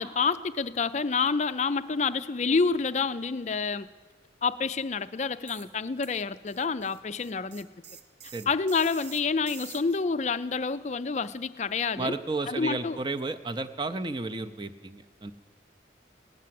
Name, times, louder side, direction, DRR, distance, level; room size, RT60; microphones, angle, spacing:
voice 1, 0.0-3.9 4.4-7.7 8.5-12.1 12.5-13.0, left 4 dB, 35° left, 13 dB, 0.4 m, -28 dB
sound 1, 5.5-5.7 6.0-10.0, right 8 dB, 60° right, 0.7 m, -47 dB
voice 2, 12.0-15.3, right 3 dB, 25° right, 8 dB, 0.6 m, -32 dB
17.0 x 10.5 x 7.6 m, 1.4 s
head